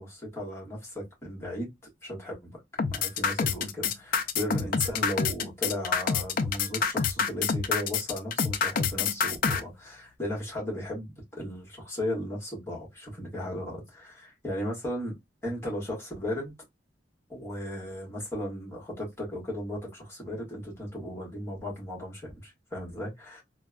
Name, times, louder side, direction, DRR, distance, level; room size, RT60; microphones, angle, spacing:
voice 1, 0.0-1.7 2.0-2.5 2.9-15.1 15.4-16.5 17.3-23.4, left 1 dB, 15° left, 1.4 m, -36 dB
sound 1, 2.8-9.6, left 6 dB, 50° left, 0.3 m, -27 dB
3.3 x 2.1 x 2.3 m
head